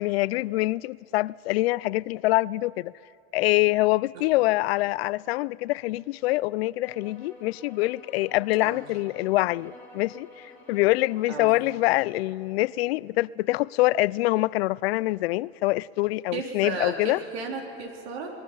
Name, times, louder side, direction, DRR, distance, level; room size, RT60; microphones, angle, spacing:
voice 1, 0.0-2.9 3.3-10.3 10.7-17.2, left 19 dB, 70° left, 0.5 m, -25 dB
sound 1, 6.8-12.3, left 2 dB, 5° left, 7.1 m, -49 dB
voice 2, 16.3-18.3, right 4 dB, 75° right, 4.1 m, -34 dB
28.5 x 20.5 x 5.6 m
supercardioid pair, 115°, 31 cm